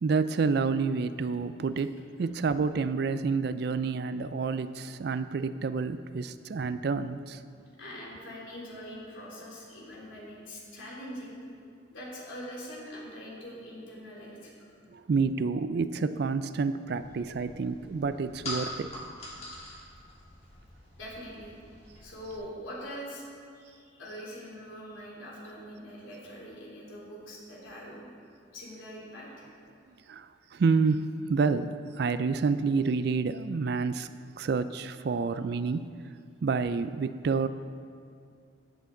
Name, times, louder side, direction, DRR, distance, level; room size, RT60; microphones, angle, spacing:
voice 1, 0.0-7.4 14.9-18.9 30.1-34.1 34.4-35.9 36.4-37.5, right 4 dB, 55° right, 12 dB, 0.3 m, -29 dB
voice 2, 7.8-11.4 11.9-14.5 21.0-21.6 22.0-23.3 23.5-28.1 28.5-29.5, equal, 80° left, -5 dB, 3.2 m, -43 dB
sound 1, 16.9-22.4, left 1 dB, 35° left, 2.0 m, -43 dB
15.5 x 8.3 x 3.8 m, 2.3 s
head